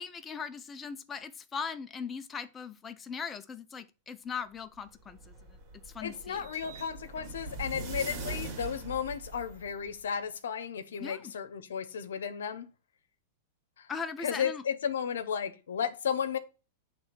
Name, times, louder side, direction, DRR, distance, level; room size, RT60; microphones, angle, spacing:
voice 1, 0.0-5.3 5.9-6.4 11.0-11.3 13.9-14.6, left 6 dB, 20° left, 0.5 m, -39 dB
sound 1, 4.9-9.9, right 3 dB, 45° right, 2.0 m, -42 dB
voice 2, 6.0-12.7 13.8-13.9 14.2-16.4, left 7 dB, 85° left, 0.8 m, -34 dB
7.7 x 3.3 x 4.4 m
hypercardioid pair, 125°, 0 cm